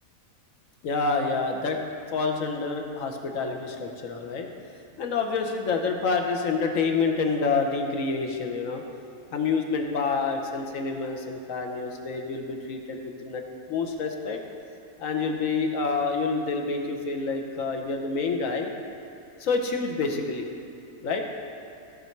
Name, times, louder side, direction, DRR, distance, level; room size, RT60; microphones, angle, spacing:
voice 1, 0.8-1.8 2.1-4.5 5.0-8.8 9.3-14.4 15.0-18.7 19.4-20.5 21.0-21.2, left 4 dB, 75° left, 3 dB, 1.3 m, -28 dB
15.0 x 5.4 x 4.5 m, 2.7 s
omnidirectional pair, 1.4 m